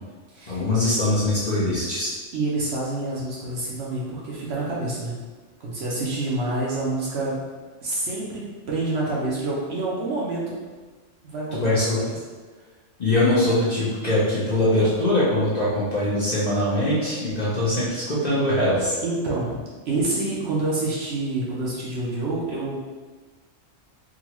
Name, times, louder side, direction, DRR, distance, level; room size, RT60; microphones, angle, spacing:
voice 1, 0.5-2.1 11.5-12.0 13.0-19.0, left 1 dB, 40° left, -9 dB, 0.7 m, -22 dB
voice 2, 2.3-5.2 5.6-7.4 7.8-10.6 11.2-11.8 19.0-19.6 19.9-22.8, right 2 dB, 60° right, -5 dB, 0.9 m, -27 dB
3.8 x 2.3 x 2.9 m, 1.4 s
omnidirectional pair, 1.4 m